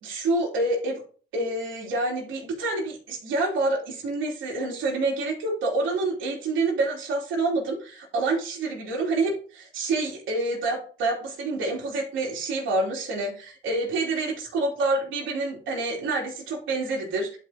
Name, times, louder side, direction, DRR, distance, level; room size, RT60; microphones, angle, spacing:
voice 1, 0.0-1.0 1.3-17.4, right 2 dB, 75° right, -3 dB, 3.0 m, -27 dB
11.5 x 4.8 x 2.9 m, 0.41 s
cardioid pair, 90°, 20 cm